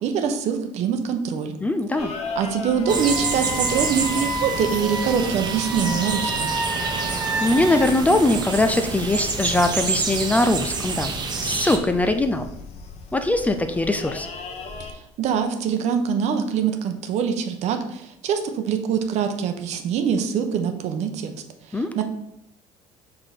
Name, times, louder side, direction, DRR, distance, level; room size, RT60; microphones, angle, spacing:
voice 1, 0.0-1.6 2.4-6.5 14.8-21.3 21.7-22.0, right 7 dB, 65° right, 6 dB, 0.9 m, -24 dB
voice 2, 1.6-2.1 7.1-11.1 11.4-12.5 13.1-14.3 21.7-22.0, left 2 dB, 10° left, 8 dB, 0.4 m, -21 dB
sound 1, 2.0-14.9, left 4 dB, 55° left, 0.9 m, -38 dB
Wind instrument woodwind instrument, 2.8-7.9, right 2 dB, 10° right, 1.2 m, -30 dB
sound 2, 2.9-11.8, right 4 dB, 35° right, 1.0 m, -28 dB
5.0 x 3.8 x 5.8 m, 0.79 s
cardioid pair, 120°, 13 cm